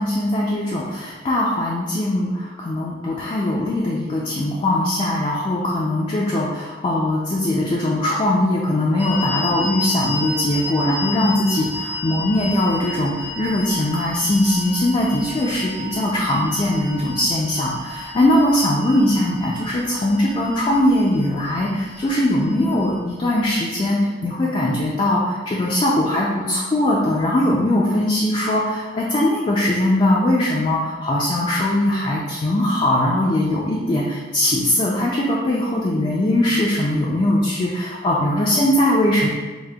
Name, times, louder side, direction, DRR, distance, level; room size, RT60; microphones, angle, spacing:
voice 1, 0.0-39.3, left 1 dB, 30° left, -4 dB, 0.3 m, -20 dB
sound 1, 9.0-23.6, left 2 dB, 15° right, 0.6 m, -32 dB
4.9 x 2.0 x 2.2 m, 1.3 s
head